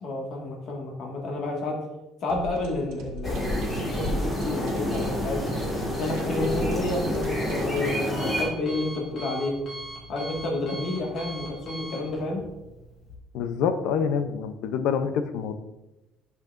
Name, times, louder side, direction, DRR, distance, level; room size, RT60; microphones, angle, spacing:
voice 1, 0.0-1.8 2.2-5.5 6.0-9.6 10.1-12.4, left 2 dB, 45° left, -1 dB, 1.8 m, -30 dB
sound 1, 2.3-7.9, right 2 dB, 90° right, 1.3 m, -42 dB
sound 2, 3.2-8.4, equal, 10° left, 1.7 m, -28 dB
Alarm, 6.9-13.2, right 1 dB, 30° left, 2.1 m, -42 dB
voice 2, 13.3-15.5, left 7 dB, 75° left, 9 dB, 0.6 m, -26 dB
10.5 x 5.9 x 2.5 m, 1.0 s
cardioid pair, 165°, 0 cm